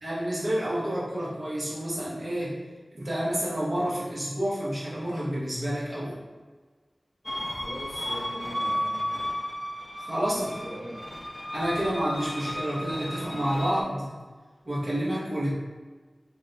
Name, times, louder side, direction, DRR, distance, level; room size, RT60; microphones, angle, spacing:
voice 1, 0.0-2.6 2.9-6.2 10.0-10.5 11.5-14.2 14.6-15.5, equal, 65° right, -8 dB, 1.2 m, -29 dB
sound 1, 7.3-13.8, equal, 30° left, 0.5 m, -33 dB
voice 2, 7.6-9.2 10.3-11.0, equal, 40° right, -9 dB, 0.9 m, -41 dB
2.8 x 2.2 x 3.9 m, 1.4 s
wide cardioid pair, 40°, 0 cm